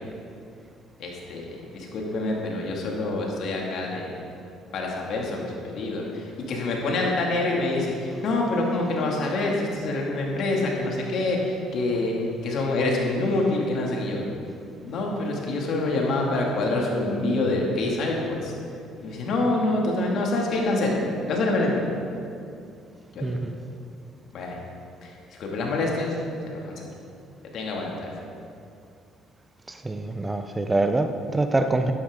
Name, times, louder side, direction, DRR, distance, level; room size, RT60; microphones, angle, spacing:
voice 1, 1.0-4.1 4.7-12.1 12.4-14.4 14.8-18.5 19.0-21.0 21.3-21.8 23.1-23.3 24.3-24.6 25.0-26.1 26.5-26.8 27.5-28.1, left 2 dB, 65° left, -1 dB, 2.5 m, -26 dB
voice 2, 23.2-23.6 29.7-31.9, right 2 dB, 20° right, 7 dB, 0.7 m, -25 dB
12.0 x 11.5 x 3.9 m, 2.5 s
supercardioid pair, 75°, 0 cm